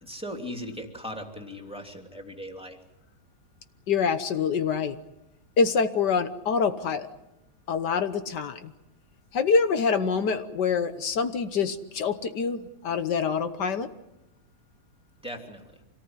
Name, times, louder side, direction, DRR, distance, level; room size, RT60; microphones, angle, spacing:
voice 1, 0.0-2.8 15.2-15.6, equal, 5° right, 3 dB, 2.8 m, -38 dB
voice 2, 3.9-5.0 5.6-7.1 7.7-8.7 9.3-13.9, left 5 dB, 75° left, 10 dB, 1.7 m, -25 dB
26.5 x 18.5 x 9.7 m, 0.94 s
omnidirectional pair, 1.9 m